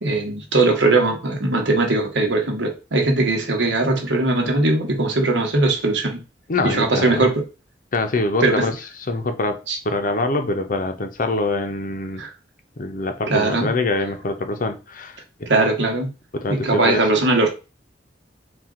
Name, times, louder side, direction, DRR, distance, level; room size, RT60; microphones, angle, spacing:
voice 1, 0.0-6.2 6.6-7.3 8.4-8.7 9.7-9.8 12.2-12.3 13.3-13.7 15.5-16.1 16.5-17.5, right 2 dB, 80° right, 1.1 m, -20 dB
voice 2, 6.5-7.3 7.9-8.8 9.1-12.2 12.8-15.5 16.3-17.1, left 2 dB, 50° left, 0.6 m, -24 dB
4.4 x 2.4 x 3.7 m
head